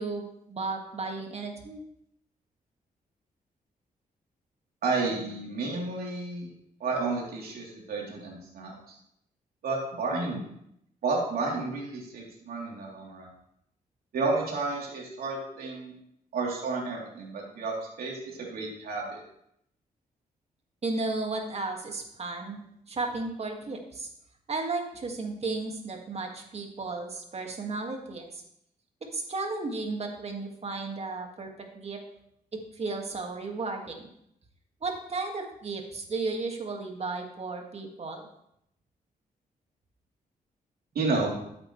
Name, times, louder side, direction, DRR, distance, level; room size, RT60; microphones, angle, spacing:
voice 1, 0.0-1.8 20.8-22.6 22.9-24.1 24.5-28.4 29.1-32.0 32.5-34.0 34.8-38.3, right 3 dB, 45° right, 2 dB, 2.0 m, -34 dB
voice 2, 4.8-6.5 6.8-8.9 9.6-10.4 11.0-13.3 14.1-15.9 16.3-19.2 41.0-41.3, right 3 dB, 80° right, -2 dB, 3.4 m, -31 dB
13.0 x 8.6 x 3.3 m, 0.75 s
cardioid pair, 95°, 15 cm